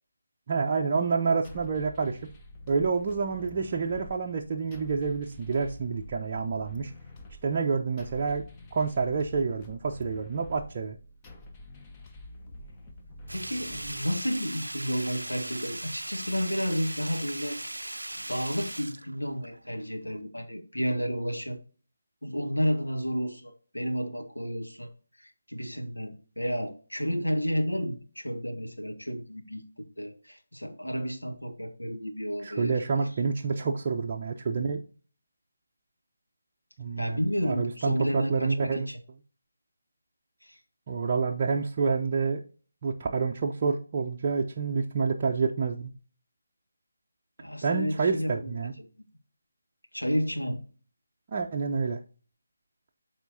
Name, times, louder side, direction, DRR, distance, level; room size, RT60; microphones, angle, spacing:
voice 1, 0.5-2.2 2.7-6.9 7.4-8.4 8.7-11.0 32.4-34.8 36.8-38.9 40.9-42.4 42.8-45.9 47.6-48.7 51.3-52.0, right 5 dB, 30° right, 0.6 m, -28 dB
sound 1, 1.4-14.5, left 1 dB, 15° left, 0.8 m, -48 dB
voice 2, 13.3-17.6 18.2-21.6 22.2-24.9 25.2-32.8 37.0-39.0 40.4-40.6 47.4-48.5 48.8-48.9 49.9-50.6, equal, 85° left, 1.7 m, -31 dB
Sink (filling or washing), 13.3-19.8 20.1-20.2, right 1 dB, 75° right, 0.5 m, -38 dB
12.5 x 4.3 x 2.7 m
figure-of-eight pair, 155°, 0 cm